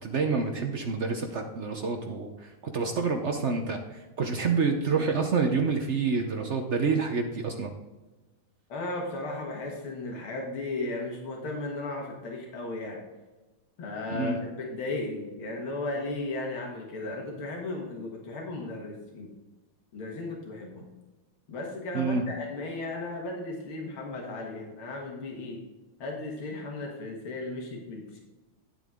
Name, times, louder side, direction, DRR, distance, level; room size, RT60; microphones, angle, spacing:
voice 1, 0.0-7.7 14.1-14.4 21.9-22.2, right 4 dB, 65° right, 4 dB, 0.6 m, -28 dB
voice 2, 8.7-13.0 13.8-19.3 19.9-20.8 21.5-25.6 26.0-28.2, left 2 dB, 85° left, 0 dB, 2.4 m, -35 dB
10.0 x 7.5 x 3.6 m, 1.2 s
omnidirectional pair, 2.3 m